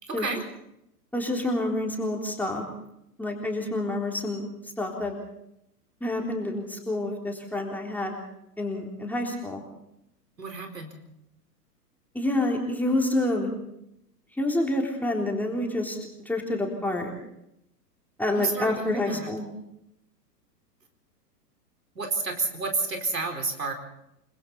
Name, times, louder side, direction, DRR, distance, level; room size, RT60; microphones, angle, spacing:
voice 1, 0.0-0.4 10.4-10.9 18.3-19.3 21.9-23.7, right 4 dB, 80° right, 4 dB, 4.5 m, -30 dB
voice 2, 1.1-2.7 3.2-4.4 4.8-5.1 6.0-8.2 8.6-9.6 12.1-13.5 14.4-16.0 16.3-17.1 18.2-19.4, left 1 dB, 5° left, 0 dB, 3.7 m, -28 dB
29.5 x 21.0 x 4.2 m, 0.81 s
figure-of-eight pair, 110°, 49 cm